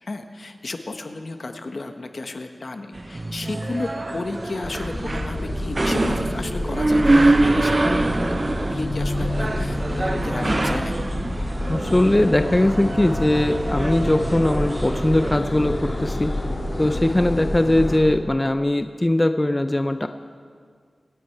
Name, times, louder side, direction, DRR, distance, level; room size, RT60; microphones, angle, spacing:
voice 1, 0.0-8.0 8.3-11.0, left 3 dB, 60° left, 6 dB, 1.2 m, -33 dB
sound 1, 3.0-15.4, right 2 dB, 35° right, 0.5 m, -25 dB
sound 2, 4.6-18.0, left 1 dB, 40° left, 2.7 m, -28 dB
voice 2, 11.7-16.3 16.8-20.1, left 1 dB, 20° left, 8 dB, 0.5 m, -20 dB
25.0 x 9.6 x 4.6 m, 2.1 s
wide cardioid pair, 60°, 0 cm